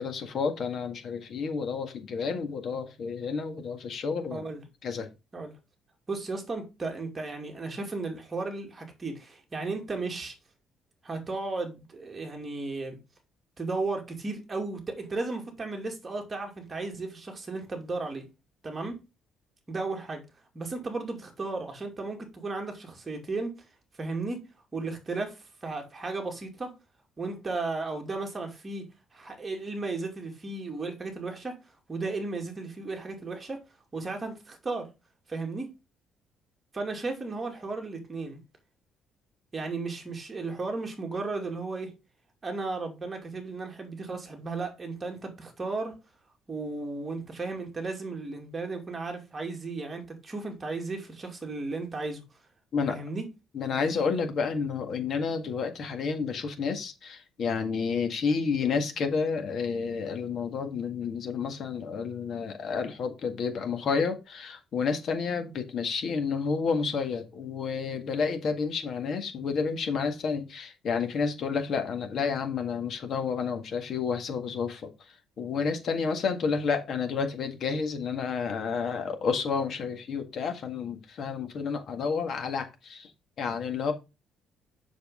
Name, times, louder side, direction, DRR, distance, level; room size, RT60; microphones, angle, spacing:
voice 1, 0.0-4.4 4.8-5.1 52.7-53.0 53.5-74.9 75.4-83.1 83.4-83.9, left 5 dB, 50° left, 1.8 m, -30 dB
voice 2, 4.3-4.6 5.3-5.5 6.1-10.3 11.0-13.0 13.6-18.2 18.6-19.0 19.7-20.2 20.5-23.5 24.0-24.4 24.7-26.7 27.2-28.9 29.1-31.6 31.9-33.6 33.9-34.9 35.3-35.7 36.7-38.4 39.5-41.9 42.4-46.0 46.5-52.2 52.9-53.3, right 3 dB, 20° right, 2.4 m, -34 dB
7.2 x 6.3 x 3.7 m
cardioid pair, 140°, 0 cm